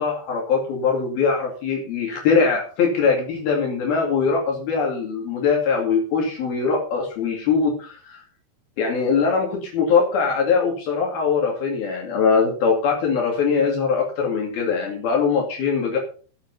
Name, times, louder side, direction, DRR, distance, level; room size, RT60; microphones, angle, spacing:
voice 1, 0.0-8.2 8.8-16.0, left 5 dB, 65° left, 0 dB, 4.3 m, -22 dB
14.0 x 7.6 x 5.6 m, 0.41 s
omnidirectional pair, 4.6 m